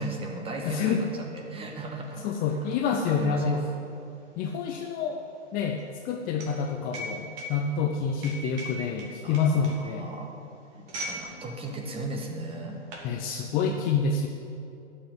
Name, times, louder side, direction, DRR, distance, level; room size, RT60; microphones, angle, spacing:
voice 1, 0.0-2.3 2.8-3.6 9.2-10.3 10.7-12.8, right 2 dB, 15° right, 2 dB, 1.7 m, -37 dB
voice 2, 0.6-1.0 2.2-3.7 4.4-5.2 5.5-10.1 13.0-14.3, left 5 dB, 25° left, 3 dB, 0.7 m, -27 dB
sound 1, 1.3-11.2 11.5-11.8 12.5-13.1, equal, 35° right, 2.7 m, -41 dB
12.5 x 6.6 x 9.0 m, 2.7 s
figure-of-eight pair, 110°, 35 cm